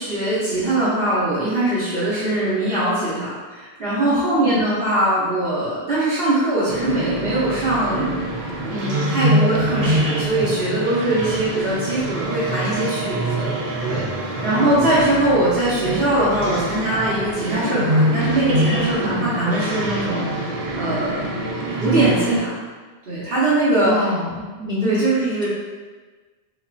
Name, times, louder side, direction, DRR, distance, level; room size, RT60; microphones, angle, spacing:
voice 1, 0.0-8.1 8.6-22.5 23.1-23.9 24.8-25.5, right 1 dB, 65° right, -10 dB, 1.3 m, -22 dB
voice 2, 4.1-4.6 23.8-24.9 25.4-25.5, left 1 dB, 5° right, -5 dB, 0.5 m, -26 dB
sound 1, 6.7-22.4, right 1 dB, 85° right, 0.9 m, -24 dB
6.5 x 2.2 x 2.5 m, 1.3 s
omnidirectional pair, 1.1 m